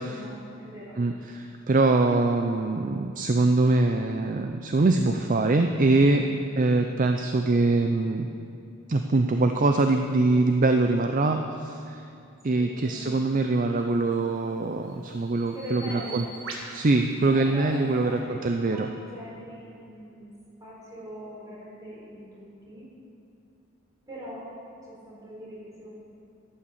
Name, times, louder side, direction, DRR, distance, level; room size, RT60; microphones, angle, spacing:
voice 1, 0.0-1.0 6.1-6.3 12.5-13.2 15.5-16.3 17.3-18.4 18.7-20.3 20.6-22.9 24.1-24.5 24.8-25.9, equal, 20° right, -6 dB, 3.9 m, -41 dB
voice 2, 1.0-6.2 6.6-8.3 8.9-12.0 12.4-16.2 16.7-18.9, right 2 dB, 40° right, 5 dB, 0.5 m, -23 dB
Bird vocalization bird call bird song, 14.0-18.2, right 3 dB, 75° right, 1.6 m, -44 dB
12.5 x 8.7 x 7.2 m, 2.6 s
head